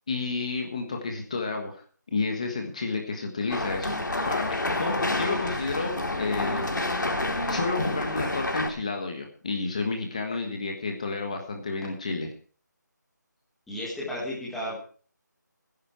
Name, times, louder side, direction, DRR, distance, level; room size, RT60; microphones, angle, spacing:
voice 1, 0.1-1.8 2.1-4.0 4.2-6.9 7.5-12.3, left 3 dB, 20° left, 3 dB, 1.5 m, -31 dB
sound 1, 3.5-8.7, left 2 dB, 80° left, 3.8 m, -28 dB
voice 2, 13.7-14.8, left 1 dB, ahead, -8 dB, 1.6 m, -33 dB
18.0 x 10.5 x 4.6 m, 0.43 s
figure-of-eight pair, 175°, 10 cm